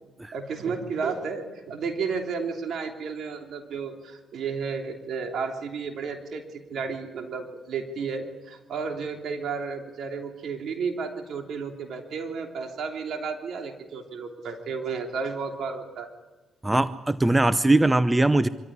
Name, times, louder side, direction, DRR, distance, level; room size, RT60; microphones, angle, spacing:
voice 1, 0.3-16.1, right 5 dB, 65° right, 3 dB, 3.2 m, -32 dB
voice 2, 16.6-18.5, right 2 dB, 15° right, 14 dB, 0.7 m, -21 dB
25.0 x 14.0 x 9.9 m, 1.2 s
supercardioid pair, 70°, 0 cm